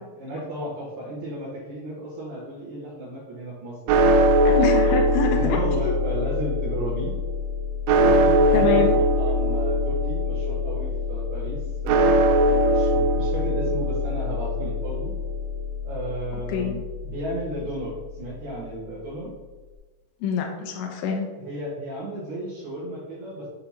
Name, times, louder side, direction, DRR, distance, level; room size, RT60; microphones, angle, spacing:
voice 1, 0.2-4.4 4.8-5.0 5.3-7.1 7.9-15.1 15.8-19.3 21.4-23.5, right 1 dB, 65° right, -8 dB, 3.1 m, -34 dB
sound 1, 3.9-18.1, equal, 85° right, 2.6 m, -22 dB
voice 2, 4.5-6.0 8.5-8.9 16.5-16.8 20.2-21.3, left 5 dB, 80° left, 1 dB, 2.8 m, -25 dB
7.7 x 6.7 x 2.8 m, 1.3 s
omnidirectional pair, 5.7 m